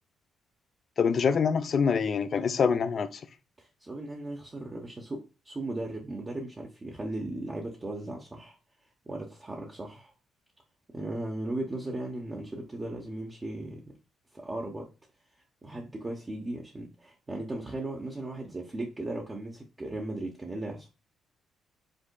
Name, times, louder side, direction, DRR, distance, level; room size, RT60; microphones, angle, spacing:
voice 1, 1.0-3.2, left 6 dB, 50° left, 0.4 m, -25 dB
voice 2, 3.6-8.6 9.1-10.1 10.9-14.0 14.3-14.9 15.6-20.9, right 2 dB, 25° right, 0.7 m, -37 dB
5.2 x 3.6 x 2.2 m
cardioid pair, 90°, 0 cm